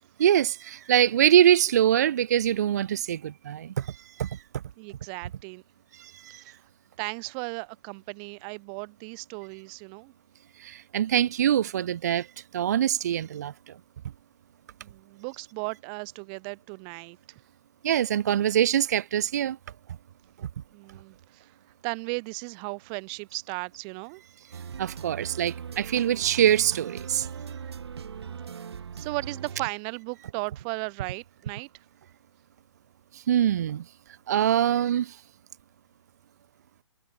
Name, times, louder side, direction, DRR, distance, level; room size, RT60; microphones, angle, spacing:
voice 1, 0.2-4.4 5.9-6.4 10.6-12.3 12.5-13.8 17.8-19.6 20.4-20.5 24.8-27.3 33.1-33.8 34.3-35.2, right 10 dB, 35° right, 0.6 m, -24 dB
voice 2, 4.8-5.6 6.4-6.6 7.0-10.1 14.8-17.4 20.7-21.5 21.8-24.2 28.0-28.7 29.0-31.7, right 40 dB or more, 20° right, 1.5 m, -36 dB
sound 1, 24.5-29.7, right 7 dB, 60° right, 6.2 m, -39 dB
hypercardioid pair, 170°, 15 cm